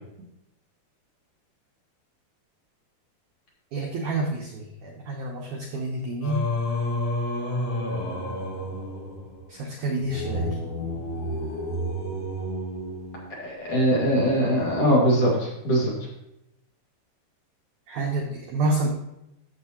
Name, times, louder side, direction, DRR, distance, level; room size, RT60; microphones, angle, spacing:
voice 1, 3.7-6.4 9.5-10.6 17.9-18.9, right 2 dB, 85° right, 0 dB, 1.7 m, -28 dB
Singing, 6.2-13.6, left 1 dB, 65° left, 1.5 m, -30 dB
voice 2, 13.4-15.9, equal, 40° left, -5 dB, 2.7 m, -21 dB
14.5 x 6.8 x 3.0 m, 0.86 s
omnidirectional pair, 5.0 m